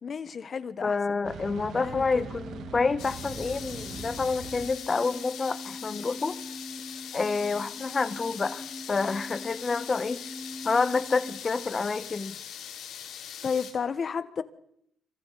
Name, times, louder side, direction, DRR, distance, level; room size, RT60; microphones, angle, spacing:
voice 1, 0.0-1.2 1.7-2.3 13.4-14.4, left 6 dB, 45° left, 1.4 m, -32 dB
voice 2, 0.8-6.4 7.1-10.2 10.6-12.4, left 4 dB, 30° left, 1.4 m, -28 dB
sound 1, 1.2-4.7, right 6 dB, 75° right, 2.4 m, -41 dB
sound 2, 1.8-11.4, left 1 dB, 5° left, 1.0 m, -43 dB
sound 3, 3.0-13.7, left 9 dB, 85° left, 3.6 m, -41 dB
26.0 x 25.5 x 4.2 m
cardioid pair, 90°, 0 cm